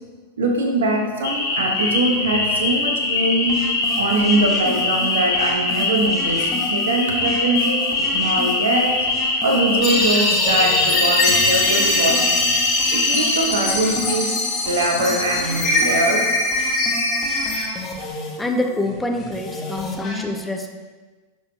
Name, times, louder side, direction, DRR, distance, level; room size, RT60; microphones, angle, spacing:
voice 1, 0.4-3.7 4.0-9.1 9.4-12.4 12.9-14.3 14.6-16.2, right 2 dB, 65° right, 2 dB, 1.1 m, -22 dB
sound 1, 1.2-13.4, left 2 dB, 60° left, 1.7 m, -22 dB
sound 2, 3.5-20.2, left 1 dB, 25° left, 1.3 m, -33 dB
sound 3, 9.8-17.6, left 2 dB, 40° left, 2.1 m, -22 dB
voice 2, 18.4-20.8, left 2 dB, 5° left, 3 dB, 0.7 m, -26 dB
11.0 x 4.8 x 2.8 m, 1.3 s
figure-of-eight pair, 90°, 0 cm